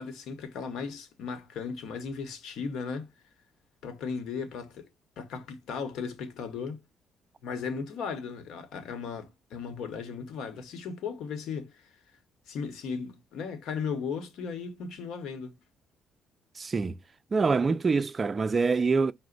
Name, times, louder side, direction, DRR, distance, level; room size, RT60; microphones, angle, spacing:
voice 1, 0.0-3.1 3.8-4.9 5.2-6.8 7.4-11.9 12.5-15.5, left 5 dB, 80° left, 0.9 m, -36 dB
voice 2, 16.6-16.9 17.3-19.1, right 4 dB, 35° right, 0.3 m, -25 dB
5.8 x 2.0 x 3.8 m
cardioid pair, 90°, 0 cm